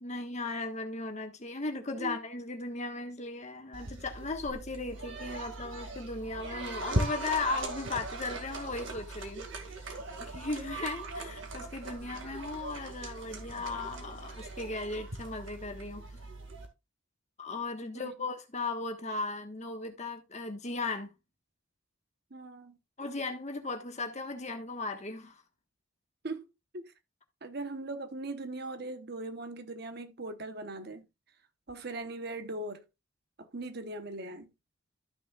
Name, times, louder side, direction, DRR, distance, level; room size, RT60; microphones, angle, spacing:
voice 1, 0.0-16.1 17.4-21.1 23.0-25.4, left 3 dB, 35° left, 1.4 m, -37 dB
sound 1, 3.7-16.7, right 2 dB, 70° right, 2.0 m, -39 dB
voice 2, 22.3-22.8 26.2-26.5 26.7-26.9 27.4-31.1 31.7-32.8 33.4-34.5, right 2 dB, 55° right, 1.0 m, -39 dB
13.5 x 6.2 x 2.4 m
head